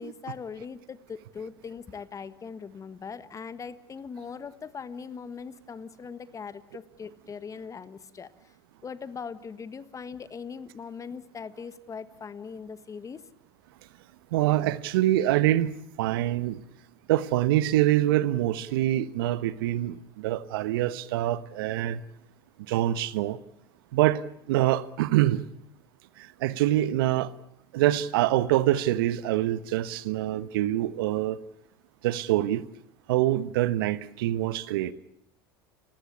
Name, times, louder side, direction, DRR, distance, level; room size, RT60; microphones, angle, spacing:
voice 1, 0.0-8.5 8.8-13.2, left 6 dB, 25° left, 1.5 m, -40 dB
voice 2, 14.3-16.6 17.1-22.0 22.7-23.4 23.9-25.4 26.2-27.3 27.7-31.4 32.0-32.7 33.1-34.9, right 14 dB, 70° right, 1.1 m, -25 dB
30.0 x 15.5 x 8.6 m
hypercardioid pair, 85°, 12 cm